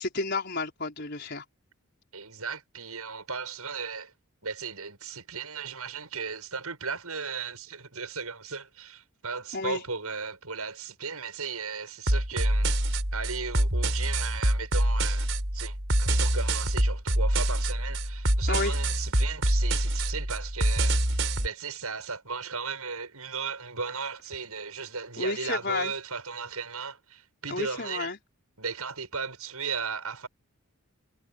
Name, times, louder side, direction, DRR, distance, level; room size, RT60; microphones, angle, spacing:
voice 1, 0.0-1.4 9.5-9.8 18.5-18.8 25.2-25.9 27.5-28.2, left 3 dB, 50° left, 5.2 m, -31 dB
voice 2, 2.1-4.1 4.4-12.7 13.1-15.3 15.5-21.0 21.4-28.1 28.6-30.3, right 5 dB, 85° right, 7.8 m, -36 dB
sound 1, 12.1-21.5, right 1 dB, 55° right, 6.6 m, -26 dB
head